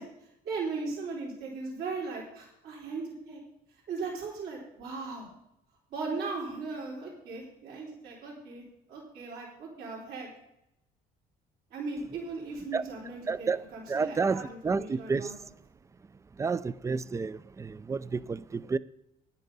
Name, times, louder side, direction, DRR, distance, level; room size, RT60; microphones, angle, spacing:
voice 1, 0.0-3.4 3.9-5.3 5.9-10.3 11.7-15.3, right 4 dB, 70° right, 3.8 m, -38 dB
voice 2, 13.3-13.6 13.9-15.3 16.4-18.8, right 4 dB, 20° right, 0.4 m, -30 dB
9.9 x 9.8 x 5.4 m
cardioid pair, 110°, 17 cm